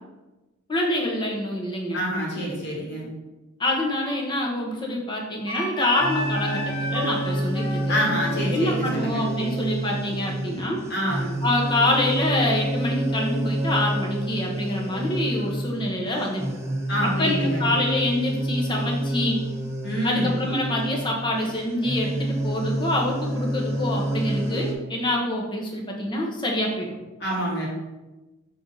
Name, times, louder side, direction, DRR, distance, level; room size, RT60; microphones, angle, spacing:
voice 1, 0.7-2.0 3.6-7.9 8.5-10.8 11.4-16.4 17.0-19.4 20.0-26.9, left 1 dB, 20° left, -1 dB, 1.0 m, -26 dB
voice 2, 1.9-3.0 7.9-9.2 10.9-11.3 16.9-17.6 19.8-20.3 27.2-27.7, equal, 55° left, -4 dB, 2.1 m, -27 dB
Wind instrument woodwind instrument, 5.5-10.8, right 1 dB, 90° left, 1.6 m, -32 dB
sound 1, 6.0-24.7, right 1 dB, 15° right, 0.8 m, -28 dB
6.6 x 3.9 x 4.1 m, 1.1 s
head